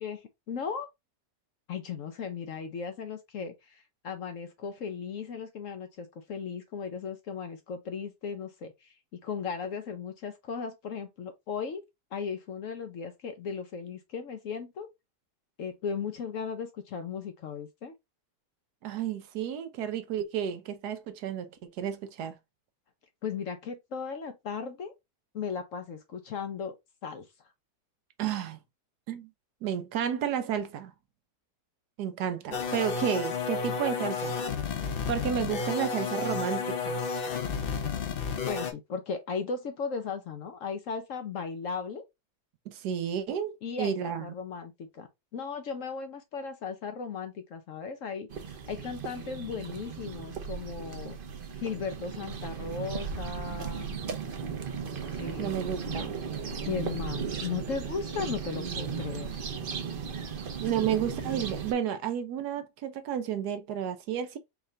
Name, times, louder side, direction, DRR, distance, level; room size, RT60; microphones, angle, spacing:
voice 1, 0.0-0.9 1.7-9.0 9.2-11.8 12.1-14.9 15.6-17.9 23.2-24.9 25.3-26.8 27.0-27.5 38.3-42.0 43.6-51.2 51.6-53.9 55.2-56.1 56.6-59.3, left 6 dB, 60° left, 0.9 m, -36 dB
voice 2, 18.8-22.3 28.2-28.6 29.1-29.3 29.6-30.9 32.0-34.4 35.1-37.1 42.7-44.2 55.4-56.2 58.6-59.0 60.6-64.4, right 9 dB, 75° right, 1.2 m, -32 dB
sound 1, 32.5-38.7, left 5 dB, 80° left, 0.5 m, -31 dB
sound 2, 48.3-61.7, right 6 dB, 55° right, 0.6 m, -36 dB
4.7 x 2.4 x 3.3 m
omnidirectional pair, 1.8 m